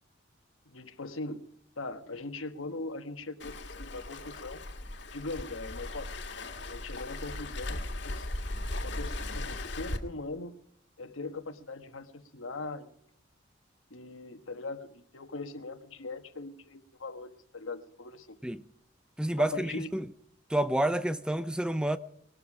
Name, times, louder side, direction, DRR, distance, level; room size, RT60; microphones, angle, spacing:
voice 1, 0.6-1.4 1.8-4.6 5.1-6.1 6.7-8.3 8.8-10.5 11.0-13.1 13.9-18.4 19.4-19.9, left 2 dB, 85° left, 1.4 m, -40 dB
Waves surf, 3.4-10.0, left 2 dB, 65° left, 1.9 m, -37 dB
voice 2, 19.2-20.0 20.5-22.0, right 1 dB, 5° right, 0.5 m, -29 dB
20.5 x 13.0 x 4.9 m
head